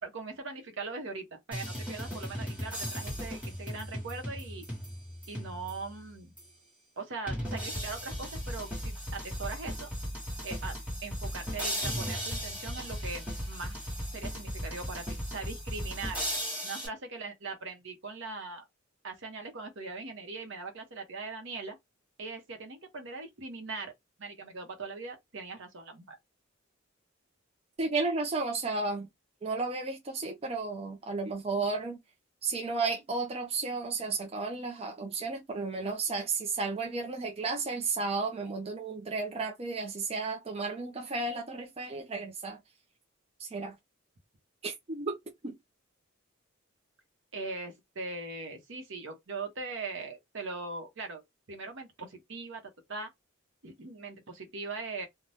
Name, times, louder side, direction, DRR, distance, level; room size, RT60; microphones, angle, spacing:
voice 1, 0.0-4.7 5.3-6.3 7.0-9.9 10.4-13.8 14.1-16.2 16.6-18.7 19.0-21.8 22.2-23.9 24.2-26.2 47.3-51.2 51.5-52.6 52.9-53.1 53.6-55.1, right 3 dB, 65° right, 0.9 m, -40 dB
sound 1, 1.5-5.9 6.4-6.5 7.3-16.9, equal, 5° right, 1.3 m, -36 dB
voice 2, 27.8-29.1 29.4-32.0 32.4-42.6 43.4-43.8 44.6-45.2 45.4-45.5, right 3 dB, 30° right, 0.5 m, -33 dB
2.7 x 2.2 x 3.2 m
head